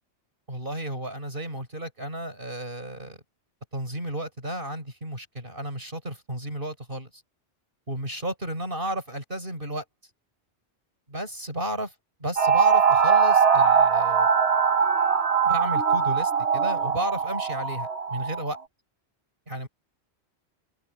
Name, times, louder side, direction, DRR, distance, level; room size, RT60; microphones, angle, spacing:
voice 1, 0.5-3.2 3.7-7.2 7.9-9.8 11.1-11.9 12.2-14.3 15.4-18.6 19.5-19.7, right 1 dB, 50° right, 6.7 m, -33 dB
om-mani-padme hum, 12.4-18.5, right 6 dB, 70° right, 1.6 m, -21 dB
open air
omnidirectional pair, 1.1 m